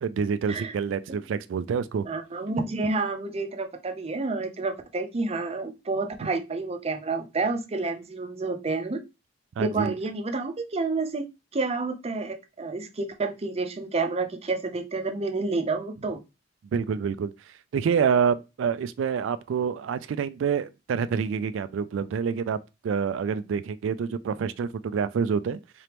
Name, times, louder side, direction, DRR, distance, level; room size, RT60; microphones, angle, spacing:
voice 1, 0.0-2.1 9.6-9.9 16.7-17.3 17.7-22.6 22.8-25.6, right 6 dB, 90° right, 0.3 m, -27 dB
voice 2, 2.1-9.0 9.6-11.3 11.5-16.2, right 3 dB, 35° right, 0.6 m, -29 dB
3.8 x 3.4 x 3.0 m
head